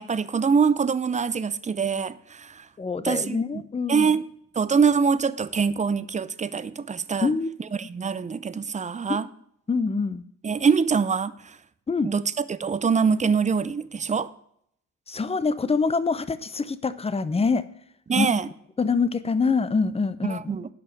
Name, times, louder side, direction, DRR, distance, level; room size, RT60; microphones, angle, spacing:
voice 1, 0.0-2.7 3.0-3.6 3.9-4.2 4.6-7.3 7.7-9.3 10.4-11.6 12.0-14.3 18.1-18.5 20.3-20.7, right 5 dB, 25° right, 0.6 m, -24 dB
voice 2, 2.8-4.1 7.2-7.5 9.1-9.2 9.7-10.2 11.9-12.1 15.1-17.6 18.1-18.3 18.8-20.6, left 4 dB, 20° left, 0.7 m, -25 dB
10.5 x 5.5 x 6.7 m
cardioid pair, 90°, 30 cm